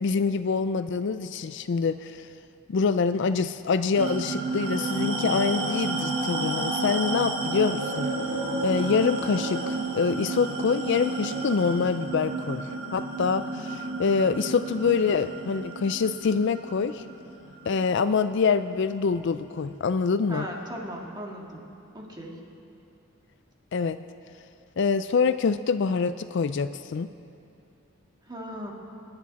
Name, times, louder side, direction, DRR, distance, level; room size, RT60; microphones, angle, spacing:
voice 1, 0.0-2.3 2.7-8.1 8.6-12.6 12.9-17.0 17.7-20.5 23.7-24.0 24.8-27.1, left 5 dB, 60° left, 12 dB, 0.4 m, -25 dB
sound 1, 3.9-18.8, right 3 dB, 80° right, 3.2 m, -31 dB
sound 2, 4.6-9.7, left 2 dB, 40° left, 1.1 m, -42 dB
voice 2, 20.3-21.6 21.9-22.4 28.3-28.7, equal, 20° right, -1 dB, 1.9 m, -37 dB
29.0 x 9.9 x 4.1 m, 2.7 s
head